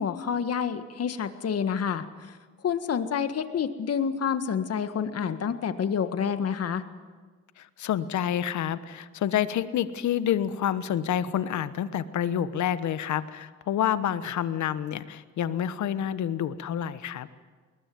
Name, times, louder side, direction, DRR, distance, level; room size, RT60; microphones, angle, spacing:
voice 1, 0.0-2.0 2.6-6.8, left 7 dB, 55° left, 10 dB, 1.7 m, -28 dB
voice 2, 7.6-17.3, left 10 dB, 70° left, 14 dB, 1.2 m, -28 dB
21.5 x 20.0 x 9.4 m, 1.5 s
cardioid pair, 90°, 30 cm